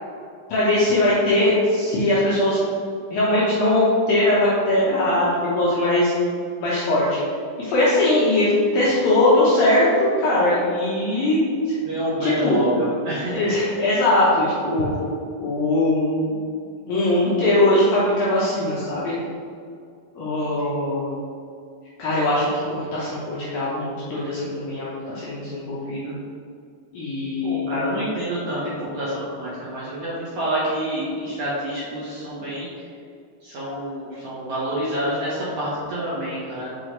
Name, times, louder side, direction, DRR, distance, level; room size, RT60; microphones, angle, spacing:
voice 1, 0.5-2.6 3.1-6.1 6.6-7.2 7.6-11.8 12.2-12.6 13.3-14.9 15.4-16.4 16.9-19.1 20.2-21.1 22.0-26.1 26.9-28.0, left 1 dB, 75° left, -8 dB, 2.2 m, -20 dB
voice 2, 11.8-13.4 27.4-32.7 33.4-36.7, right 1 dB, 70° right, -9 dB, 1.8 m, -27 dB
6.5 x 5.4 x 3.1 m, 2.3 s
omnidirectional pair, 5.3 m